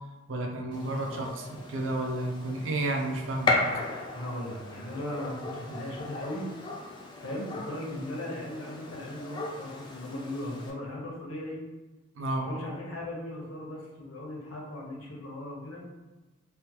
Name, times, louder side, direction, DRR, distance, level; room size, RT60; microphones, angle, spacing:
voice 1, 0.3-3.6 7.9-8.0 12.2-12.5, right 2 dB, 65° right, 2 dB, 0.4 m, -31 dB
Gunshot gunfire, 0.7-10.7, left 2 dB, 25° left, 0.3 m, -36 dB
voice 2, 1.0-1.3 4.1-6.5 7.2-11.6 12.4-15.8, left 1 dB, 75° left, -2 dB, 0.8 m, -38 dB
3.4 x 2.1 x 2.8 m, 1.1 s
head